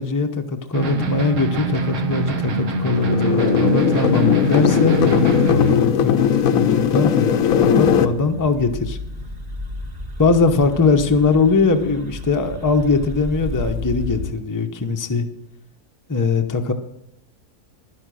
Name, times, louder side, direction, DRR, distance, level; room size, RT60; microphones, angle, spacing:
voice 1, 0.0-9.0 10.2-15.2 16.1-16.7, left 4 dB, 15° left, 5 dB, 0.7 m, -21 dB
sound 1, 0.7-5.8, right 2 dB, 55° right, 1.4 m, -24 dB
sound 2, 3.0-8.1, left 8 dB, 65° left, 1.1 m, -18 dB
sound 3, 7.7-14.3, left 1 dB, 25° right, 1.6 m, -32 dB
11.5 x 10.5 x 6.4 m, 0.80 s
omnidirectional pair, 1.7 m